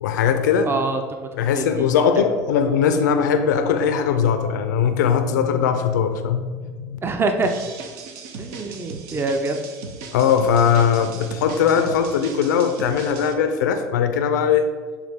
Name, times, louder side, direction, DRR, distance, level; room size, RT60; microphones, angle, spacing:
voice 1, 0.0-0.7 1.4-7.0 10.1-14.7, left 7 dB, 85° left, 8 dB, 0.4 m, -20 dB
voice 2, 0.7-2.1 7.0-7.5 8.4-9.6, right 3 dB, 25° right, 6 dB, 0.6 m, -25 dB
sound 1, 7.4-13.3, right 5 dB, 70° right, 0.7 m, -37 dB
7.3 x 3.6 x 3.5 m, 1.5 s
hypercardioid pair, 85°, 9 cm